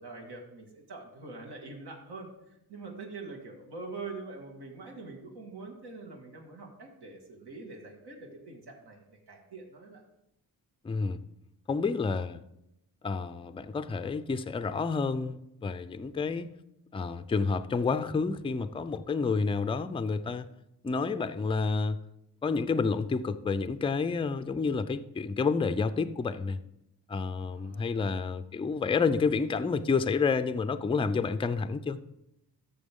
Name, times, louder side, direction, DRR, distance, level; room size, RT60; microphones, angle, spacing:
voice 1, 0.0-2.3 2.7-10.0 27.5-28.0, right 3 dB, 80° right, 2.1 m, -44 dB
voice 2, 10.8-11.2 11.7-12.4 13.0-16.6 16.9-20.5 20.8-22.0 22.4-26.6 27.1-32.0, left 4 dB, 15° left, 0.3 m, -29 dB
13.0 x 6.8 x 3.6 m
wide cardioid pair, 120°, 39 cm